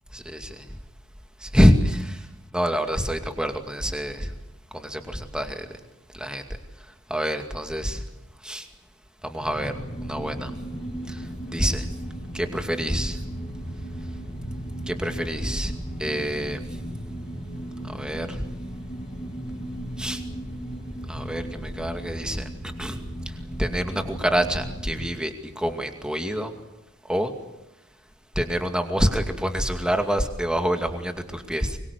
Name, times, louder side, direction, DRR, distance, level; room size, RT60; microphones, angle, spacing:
voice 1, 0.1-0.6 1.4-2.2 2.5-4.3 4.7-5.7 6.2-6.4 7.1-8.0 8.4-8.7 9.2-9.7 10.0-10.5 11.1-11.2 11.5-11.8 12.3-13.2 14.9-15.7 16.0-16.6 17.9-18.4 20.0-20.2 21.1-22.4 22.8-23.0 23.6-26.5 27.1-27.3 28.4-31.8, equal, 5° right, 5 dB, 2.4 m, -26 dB
sound 1, 9.4-25.1, right 1 dB, 25° left, 5.0 m, -35 dB
24.5 x 23.0 x 8.2 m, 0.92 s
head